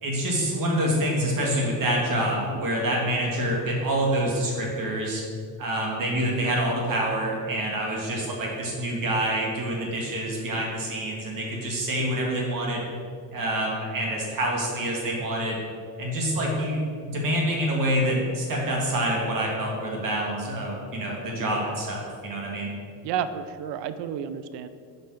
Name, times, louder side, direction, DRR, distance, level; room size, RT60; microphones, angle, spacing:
voice 1, 0.0-5.2 5.6-12.9 13.3-15.6 16.0-22.7, right 1 dB, 55° right, -2 dB, 1.8 m, -27 dB
voice 2, 23.0-24.7, right 8 dB, 80° right, 11 dB, 0.6 m, -31 dB
5.6 x 5.4 x 6.0 m, 2.3 s
cardioid pair, 120°, 40 cm